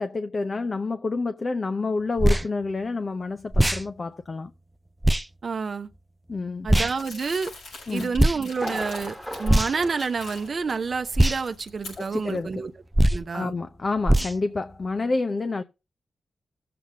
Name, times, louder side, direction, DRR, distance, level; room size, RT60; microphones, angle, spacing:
voice 1, 0.0-4.5 6.3-6.7 7.9-8.2 12.0-12.6 13.3-15.6, left 3 dB, 45° left, 0.7 m, -28 dB
sound 1, 2.2-2.5 3.5-3.8 5.0-5.2 6.7-6.9 8.1-8.4 9.4-9.9 11.1-11.4 12.9-13.2 14.0-14.4, right 1 dB, 10° right, 0.4 m, -20 dB
voice 2, 5.4-5.9 6.6-7.5 7.9-12.7 13.1-13.5, right 5 dB, 55° right, 0.8 m, -29 dB
Crumpling crinkling, 6.9-10.7 11.1-12.4, left 3 dB, 90° left, 5.6 m, -43 dB
Thunder, 8.5-11.1 11.4-11.5 12.0-12.1, equal, 5° left, 1.4 m, -37 dB
16.0 x 7.8 x 2.3 m
cardioid pair, 50°, 0 cm